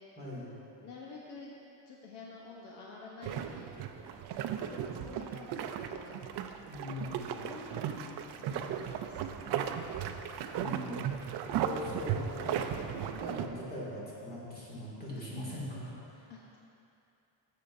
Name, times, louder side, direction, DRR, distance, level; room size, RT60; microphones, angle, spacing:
voice 1, 0.2-0.5 6.7-7.4 10.5-11.1 11.6-16.3, left 1 dB, 20° left, -7 dB, 2.0 m, -41 dB
voice 2, 0.8-1.6 1.9-3.7 4.7-6.3 7.2-10.4 16.3-16.6, left 4 dB, 65° left, -3 dB, 0.9 m, -49 dB
sound 1, 3.2-13.5, right 9 dB, 60° right, 0.5 m, -36 dB
13.5 x 6.6 x 2.6 m, 2.7 s
cardioid pair, 170°, 45 cm